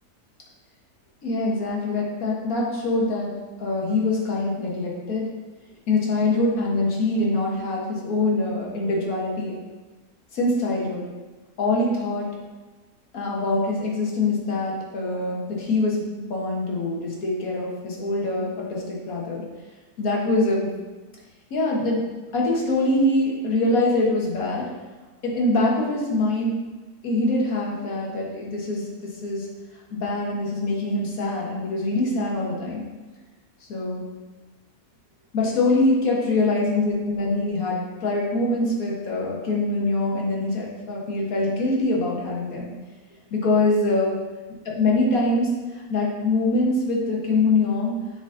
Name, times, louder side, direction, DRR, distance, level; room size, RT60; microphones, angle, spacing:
voice 1, 1.2-3.3 3.6-5.3 5.9-9.6 10.3-11.1 11.6-12.3 13.1-19.4 20.0-20.7 21.5-22.0 22.3-24.7 25.2-26.6 27.0-29.5 29.9-32.9 33.7-34.1 35.3-42.7 43.3-44.1 44.7-48.0, left 2 dB, 65° left, -3 dB, 1.7 m, -24 dB
7.1 x 4.1 x 3.8 m, 1.2 s
omnidirectional pair, 1.7 m